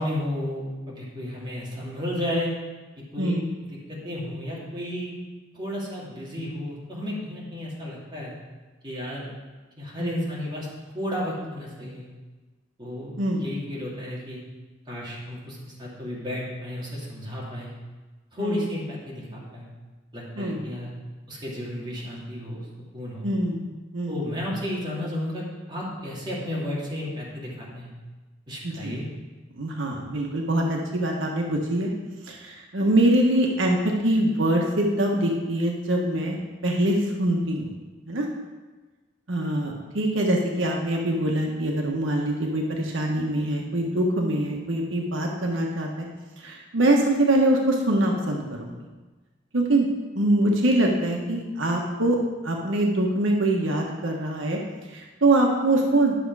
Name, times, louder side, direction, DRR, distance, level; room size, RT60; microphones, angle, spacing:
voice 1, 0.0-2.5 3.1-3.4 3.9-5.1 5.5-8.3 8.8-9.3 9.8-10.7 10.9-12.1 12.8-13.1 13.4-14.4 14.9-17.7 18.3-19.7 20.1-20.9 21.3-22.6 22.9-23.3 24.1-27.9 28.5-29.1, left 1 dB, 25° right, -6 dB, 2.6 m, -32 dB
voice 2, 23.2-23.7 23.9-24.2 28.6-29.0 29.6-31.9 32.3-36.4 36.6-37.7 38.1-38.3 39.3-46.1 46.4-48.8 49.5-49.9 50.1-52.2 52.4-54.6 54.9-56.2, right 1 dB, 85° right, 0 dB, 1.2 m, -24 dB
10.5 x 6.4 x 4.7 m, 1.3 s
head